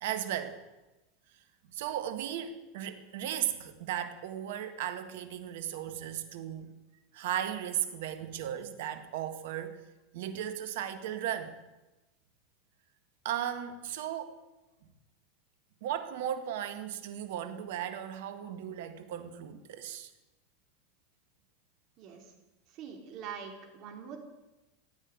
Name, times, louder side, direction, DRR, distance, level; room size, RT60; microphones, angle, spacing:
voice 1, 0.0-0.6 1.7-6.7 7.1-9.8 10.1-11.5 13.2-14.4 15.8-20.1, right 10 dB, 70° right, 9 dB, 1.7 m, -36 dB
voice 2, 22.7-24.2, right 7 dB, 50° right, 3 dB, 3.6 m, -43 dB
14.5 x 9.1 x 9.3 m, 1.0 s
hypercardioid pair, 95°, 0 cm